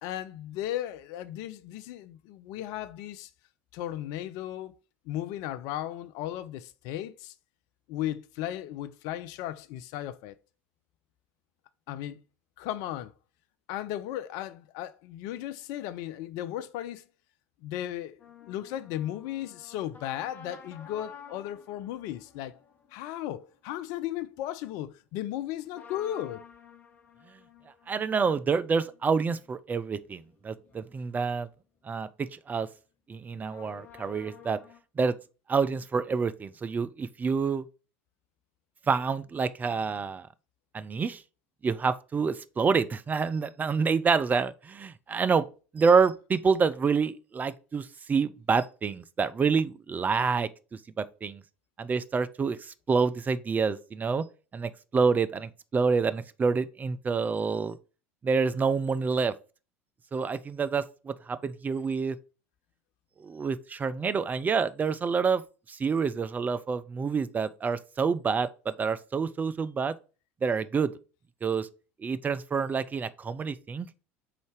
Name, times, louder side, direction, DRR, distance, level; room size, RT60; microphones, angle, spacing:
voice 1, 0.0-3.3 3.7-4.7 5.1-7.3 7.9-10.4 11.9-12.2 12.6-13.1 13.7-17.0 17.6-18.2 18.5-22.6 22.9-26.4, left 12 dB, 55° left, 0.5 m, -35 dB
sound 1, 18.2-24.1 25.7-31.1 31.4-31.5 33.4-34.8, left 6 dB, 25° left, 1.1 m, -52 dB
voice 2, 27.9-31.5 31.8-32.7 33.1-34.6 35.0-35.2 35.5-37.7 38.9-40.3 40.7-41.2 41.6-45.5 45.7-51.4 51.8-54.2 54.5-57.8 58.2-59.3 60.1-62.2 63.2-65.4 65.7-69.9 70.4-70.9 71.4-71.7 72.0-74.0, right 5 dB, 25° right, 0.5 m, -27 dB
5.0 x 4.0 x 4.8 m
figure-of-eight pair, 70°, 7 cm